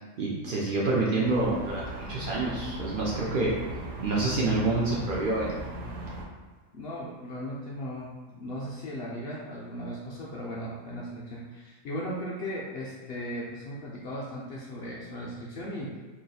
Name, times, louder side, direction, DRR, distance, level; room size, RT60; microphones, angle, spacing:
voice 1, 0.2-3.5 4.0-5.5, right 2 dB, 85° right, -5 dB, 0.4 m, -27 dB
sound 1, 1.2-6.2, right 1 dB, 65° right, 0.9 m, -38 dB
voice 2, 6.7-16.0, equal, 65° left, -5 dB, 0.6 m, -37 dB
3.0 x 2.3 x 4.0 m, 1.4 s
omnidirectional pair, 1.5 m